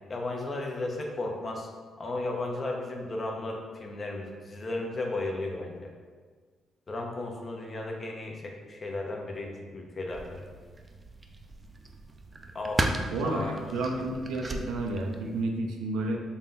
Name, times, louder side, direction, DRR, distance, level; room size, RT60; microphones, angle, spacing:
voice 1, 0.1-1.7 2.0-5.9 6.9-10.4 12.5-12.8 13.2-13.6, left 2 dB, 40° left, 1 dB, 0.6 m, -34 dB
sound 1, 10.1-15.4, right 2 dB, 25° right, 0.4 m, -36 dB
voice 2, 13.1-16.2, right 2 dB, 85° right, 2 dB, 0.5 m, -31 dB
3.9 x 2.2 x 3.8 m, 1.5 s
cardioid pair, 75°, 0 cm